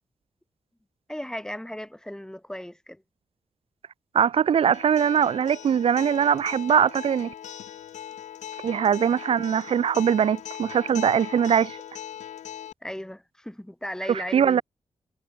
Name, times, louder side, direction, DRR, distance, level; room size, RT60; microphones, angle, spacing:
voice 1, 1.1-3.0 12.8-14.6, left 1 dB, 5° left, 2.2 m, -36 dB
voice 2, 4.1-7.3 8.6-11.8 14.1-14.6, right 8 dB, 55° right, 0.4 m, -22 dB
Acoustic guitar, 4.7-12.7, left 10 dB, 85° left, 0.4 m, -40 dB
wide cardioid pair, 135°, 12 cm